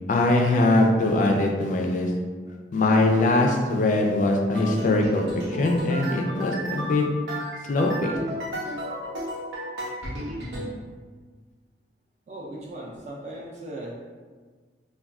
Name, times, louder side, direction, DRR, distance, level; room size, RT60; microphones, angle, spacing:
voice 1, 0.1-2.1 2.7-5.3 5.5-7.1 7.7-8.1, left 2 dB, 45° left, 2 dB, 0.3 m, -21 dB
sound 1, 4.5-10.7, equal, 85° right, 0.6 m, -33 dB
voice 2, 12.3-13.9, right 1 dB, 40° right, -4 dB, 0.4 m, -38 dB
2.3 x 2.2 x 3.4 m, 1.5 s
head